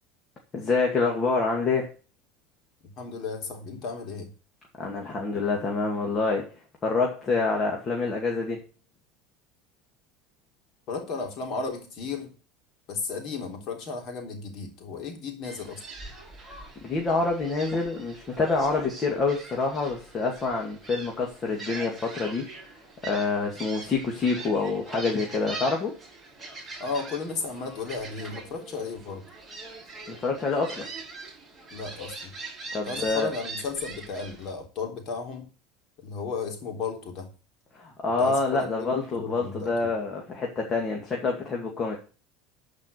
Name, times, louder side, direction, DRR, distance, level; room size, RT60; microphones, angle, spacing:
voice 1, 0.5-1.9 4.8-6.5 6.8-8.6 16.8-22.7 23.0-25.9 30.1-30.9 32.7-33.3 37.8-42.0, left 3 dB, 30° left, 2.3 m, -27 dB
voice 2, 3.0-4.3 10.9-12.3 12.9-15.8 26.8-29.3 31.7-32.3 32.8-35.5 36.0-37.3 38.2-39.9, left 4 dB, 45° left, 3.5 m, -34 dB
Gull seagull, 15.4-34.5, right 3 dB, 5° right, 6.9 m, -42 dB
11.5 x 5.3 x 6.7 m
supercardioid pair, 135°, 0 cm